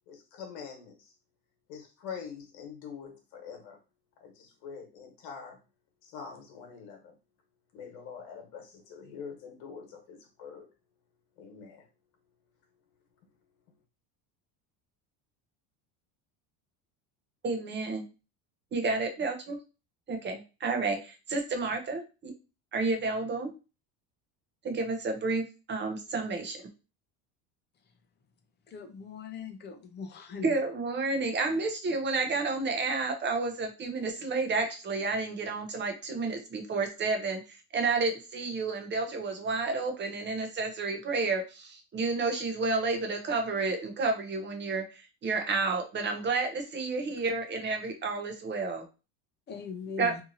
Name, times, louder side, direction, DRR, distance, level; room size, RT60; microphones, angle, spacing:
voice 1, 0.1-1.1 1.7-3.8 4.2-5.6 6.0-7.1 7.7-10.7 11.4-11.9, left 6 dB, 85° left, 3 dB, 1.2 m, -44 dB
voice 2, 17.4-18.0 18.7-19.6 20.1-22.3 22.7-23.5 24.6-26.6 30.4-44.8 45.2-48.9 50.0-50.1, right 3 dB, 25° right, 4 dB, 0.6 m, -30 dB
voice 3, 28.7-30.6 49.5-50.2, left 5 dB, 25° left, 7 dB, 0.5 m, -40 dB
2.7 x 2.6 x 2.6 m, 0.31 s
cardioid pair, 120°, 42 cm